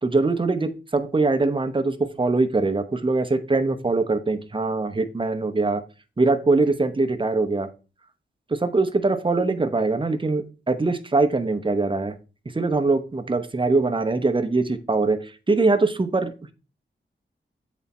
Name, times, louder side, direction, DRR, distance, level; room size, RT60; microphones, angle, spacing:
voice 1, 0.0-5.8 6.2-7.7 8.5-12.1 12.5-15.2 15.5-16.5, right 3 dB, 25° right, 8 dB, 0.8 m, -22 dB
7.9 x 4.1 x 4.2 m, 0.32 s
wide cardioid pair, 95°, 20 cm